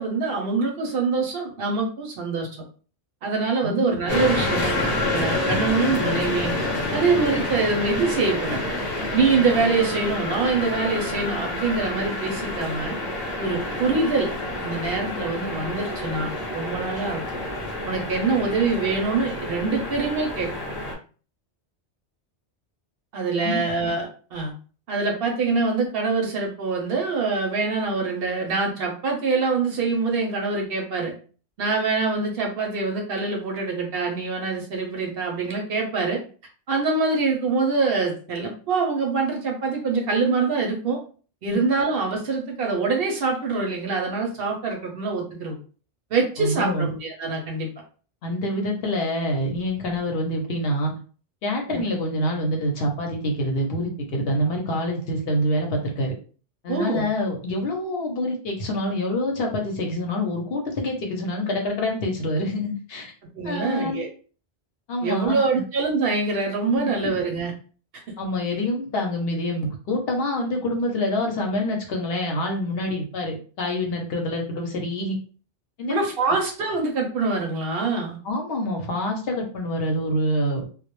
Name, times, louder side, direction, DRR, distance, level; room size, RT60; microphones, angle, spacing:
voice 1, 0.0-2.5 3.2-6.6 6.9-8.6 9.1-12.9 13.4-14.3 14.6-17.2 17.8-20.5 23.1-24.5 24.9-31.1 31.6-36.2 36.7-41.0 41.4-45.6 46.1-47.7 51.7-51.8 56.7-57.0 63.3-64.1 65.0-67.5 75.9-78.2, right 4 dB, 60° right, 1 dB, 0.7 m, -24 dB
voice 2, 3.6-3.9 23.4-23.6 41.5-41.6 46.4-46.9 48.2-50.9 51.4-56.1 56.6-63.1 63.4-64.0 64.9-65.6 68.2-75.2 75.8-75.9 78.2-80.7, left 1 dB, 65° left, 1 dB, 0.8 m, -26 dB
sound 1, 4.1-20.9, left 2 dB, 25° left, 0.7 m, -28 dB
2.2 x 2.0 x 2.9 m, 0.39 s
omnidirectional pair, 1.2 m